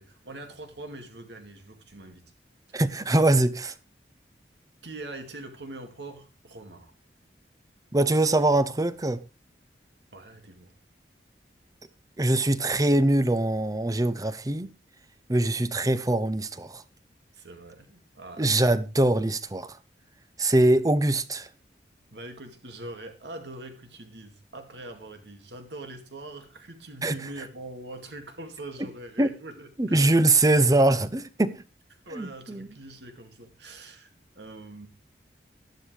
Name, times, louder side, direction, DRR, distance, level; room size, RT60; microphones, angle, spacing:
voice 1, 0.0-2.2 2.7-2.8 4.8-6.9 10.1-10.8 17.3-18.7 22.1-30.3 32.0-34.9, right 2 dB, 80° right, 2.4 m, -43 dB
voice 2, 2.7-3.7 7.9-9.2 12.2-14.7 15.3-16.8 18.4-19.7 20.4-21.5 27.0-27.2 29.2-29.3 29.8-31.6 32.2-32.7, right 2 dB, 20° right, 0.7 m, -23 dB
12.0 x 11.5 x 3.4 m
head